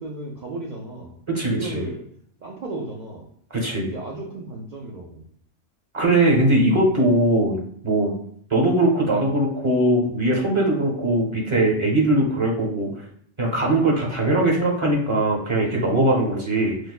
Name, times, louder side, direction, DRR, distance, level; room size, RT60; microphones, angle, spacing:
voice 1, 0.0-1.2 1.5-2.0 2.4-3.3 3.8-5.2, right 2 dB, 75° right, -2 dB, 0.4 m, -34 dB
voice 2, 1.3-1.8 3.5-3.9 5.9-7.6 7.8-8.2 8.5-13.0 13.4-16.8, right 1 dB, 30° right, -2 dB, 0.6 m, -20 dB
4.8 x 2.1 x 2.3 m, 0.63 s
omnidirectional pair, 1.3 m